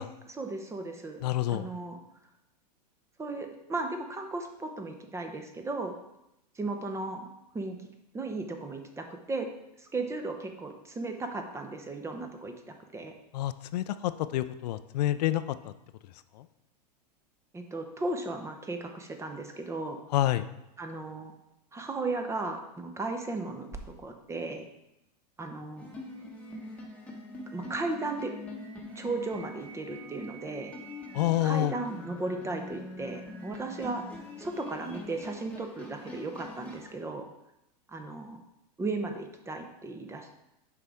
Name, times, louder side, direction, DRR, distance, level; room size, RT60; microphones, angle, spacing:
voice 1, 0.0-2.0 3.2-5.9 6.6-7.3 7.5-7.8 8.1-9.5 9.8-13.1 17.5-20.0 20.8-21.3 21.7-23.7 24.0-24.7 25.4-25.9 27.5-28.3 29.0-30.7 31.4-34.0 34.4-37.2 37.9-38.4 38.8-40.3, right 3 dB, 15° right, 5 dB, 0.7 m, -36 dB
voice 2, 1.2-1.7 13.3-15.7 16.4-16.5 20.1-20.5 31.1-31.7, left 14 dB, 70° left, 13 dB, 0.4 m, -28 dB
sound 1, 25.8-36.9, left 1 dB, 5° left, 1.1 m, -44 dB
6.8 x 4.9 x 3.5 m, 0.88 s
hypercardioid pair, 120°, 21 cm